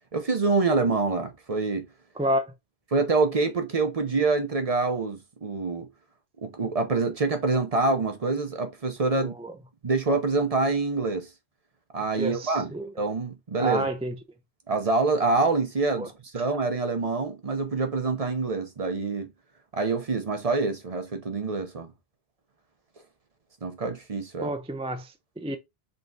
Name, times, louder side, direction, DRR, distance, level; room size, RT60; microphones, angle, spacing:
voice 1, 0.1-1.9 2.9-5.9 6.4-9.3 9.8-11.3 11.9-12.7 13.0-13.9 14.7-19.3 19.7-21.9 23.6-24.5, right 3 dB, 40° right, 0.8 m, -26 dB
voice 2, 9.2-9.5 12.2-12.9 13.6-14.1 16.0-16.1 24.4-25.6, right 1 dB, 10° right, 0.4 m, -29 dB
5.3 x 3.7 x 2.7 m
omnidirectional pair, 1.1 m